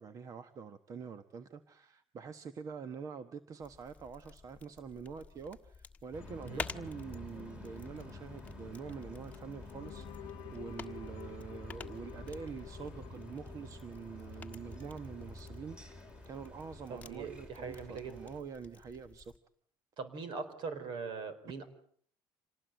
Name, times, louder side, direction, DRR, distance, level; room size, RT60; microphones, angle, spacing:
voice 1, 0.0-19.3, right 6 dB, 40° right, 11 dB, 1.2 m, -46 dB
sound 1, 3.6-19.4, left 4 dB, 15° left, 1.4 m, -51 dB
sound 2, 6.1-18.4, equal, 10° right, 3.4 m, -50 dB
sound 3, 6.2-17.1, left 15 dB, 70° left, 1.0 m, -53 dB
voice 2, 16.9-18.2 20.0-21.7, right 5 dB, 65° right, 12 dB, 4.5 m, -41 dB
27.0 x 19.0 x 9.2 m, 0.63 s
cardioid pair, 125°, 9 cm